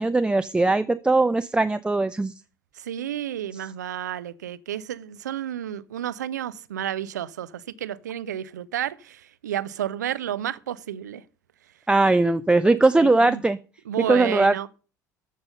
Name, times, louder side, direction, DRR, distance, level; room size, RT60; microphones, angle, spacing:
voice 1, 0.0-2.3 3.5-3.6 11.9-13.6 14.0-14.7, right 2 dB, 10° right, 0.4 m, -20 dB
voice 2, 2.7-11.2 13.0-13.4 13.9-14.7, right 10 dB, 75° right, 0.5 m, -31 dB
14.0 x 5.5 x 6.6 m
figure-of-eight pair, 65°, 10 cm